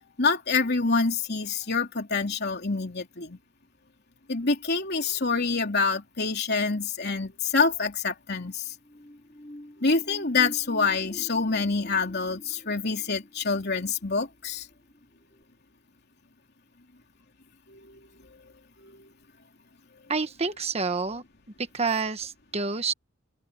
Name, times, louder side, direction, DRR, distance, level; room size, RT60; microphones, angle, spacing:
voice 1, 0.2-3.4 4.3-8.7 9.8-14.7 17.7-18.0 18.8-19.0, left 4 dB, 55° left, 3.3 m, -26 dB
sound 1, 8.7-15.0 15.4-15.5, left 1 dB, 20° left, 6.3 m, -45 dB
voice 2, 20.1-21.2 21.6-22.9, right 4 dB, 30° right, 1.3 m, -28 dB
head